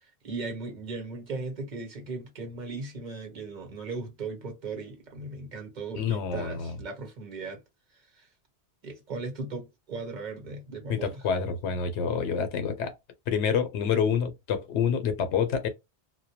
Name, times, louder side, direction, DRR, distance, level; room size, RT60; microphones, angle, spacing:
voice 1, 0.0-7.6 8.1-8.3 8.8-11.2, right 3 dB, 45° right, 1.0 m, -37 dB
voice 2, 6.0-6.8 10.9-12.9 13.3-15.7, left 7 dB, 90° left, 0.9 m, -27 dB
2.2 x 2.1 x 2.7 m
omnidirectional pair, 1.1 m